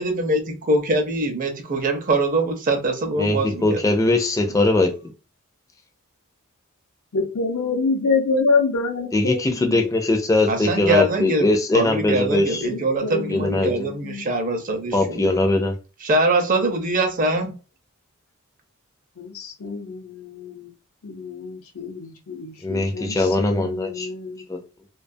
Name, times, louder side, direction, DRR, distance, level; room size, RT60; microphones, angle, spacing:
voice 1, 0.0-3.8 10.5-11.5 11.7-15.3 16.0-17.6, right 2 dB, 40° right, 0.5 m, -23 dB
voice 2, 3.2-5.1 9.1-12.7 13.3-13.9 14.9-15.7 22.6-24.1 24.5-24.6, left 2 dB, 15° left, 0.4 m, -21 dB
voice 3, 7.1-9.9 12.6-14.6 19.2-20.7 21.0-24.5, left 4 dB, 85° left, 0.6 m, -27 dB
2.3 x 2.3 x 2.5 m
head